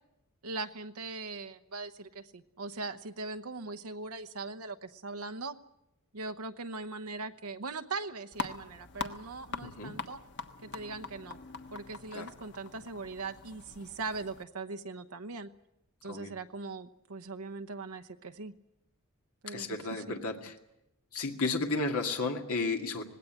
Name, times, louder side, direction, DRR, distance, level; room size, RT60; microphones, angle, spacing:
voice 1, 0.4-5.6 6.1-10.2 10.6-11.4 11.7-15.5 16.0-18.5 19.4-20.0, right 3 dB, 80° right, 9 dB, 0.9 m, -40 dB
sound 1, 8.3-14.4, left 4 dB, 55° left, 1.4 m, -43 dB
voice 2, 9.6-10.0 12.1-12.3 16.0-16.3 19.5-20.5 21.1-23.0, left 3 dB, 75° left, 3 dB, 2.1 m, -33 dB
19.5 x 17.0 x 10.0 m, 0.87 s
head